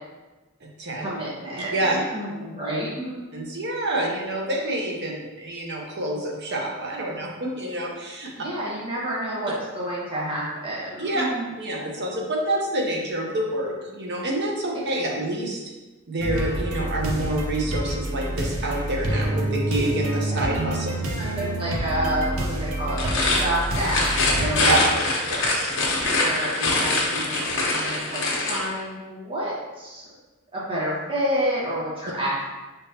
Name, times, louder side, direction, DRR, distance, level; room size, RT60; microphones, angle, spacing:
voice 1, 1.0-3.1 8.4-11.5 21.2-24.8 26.0-28.2 28.5-30.1 30.5-32.4, right 1 dB, 25° right, -8 dB, 1.1 m, -29 dB
voice 2, 3.3-8.3 11.0-11.2 11.6-15.6 16.1-20.9 24.7-24.8 25.3-26.1, right 1 dB, 55° right, -1 dB, 0.9 m, -27 dB
sound 1, 16.2-24.8, right 1 dB, 85° right, 0.7 m, -28 dB
sound 2, 22.9-28.7, left 2 dB, 65° left, 0.9 m, -24 dB
5.3 x 3.5 x 2.8 m, 1.2 s
head